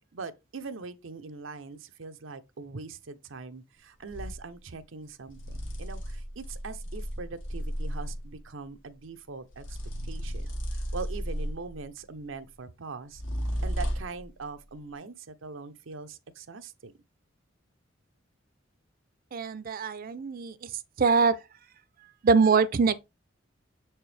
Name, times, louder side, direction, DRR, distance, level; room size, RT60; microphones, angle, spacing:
voice 1, 0.1-9.8 10.0-10.5 10.7-13.2 13.6-16.9, right 4 dB, 90° right, 0.7 m, -42 dB
sound 1, 4.1-4.4 5.3-8.3 9.5-11.8 13.1-14.2, equal, 85° left, 1.3 m, -34 dB
voice 2, 19.3-20.7 21.0-21.4 22.2-23.0, right 5 dB, 45° right, 0.5 m, -23 dB
6.7 x 4.4 x 3.4 m
head